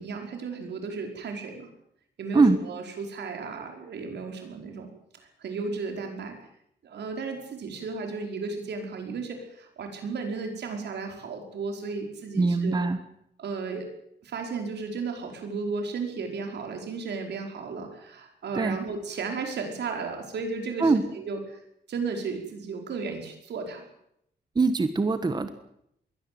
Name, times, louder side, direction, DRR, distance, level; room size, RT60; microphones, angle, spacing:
voice 1, 0.0-1.7 2.2-4.9 5.2-6.4 6.8-12.8 13.4-13.9 14.2-21.6 21.9-23.9, right 4 dB, 80° right, 3 dB, 5.2 m, -34 dB
voice 2, 12.3-13.0 18.5-18.8 20.8-21.0 24.5-25.5, right 3 dB, 25° right, 10 dB, 1.4 m, -22 dB
22.0 x 17.5 x 7.8 m, 0.74 s
wide cardioid pair, 135°, 17 cm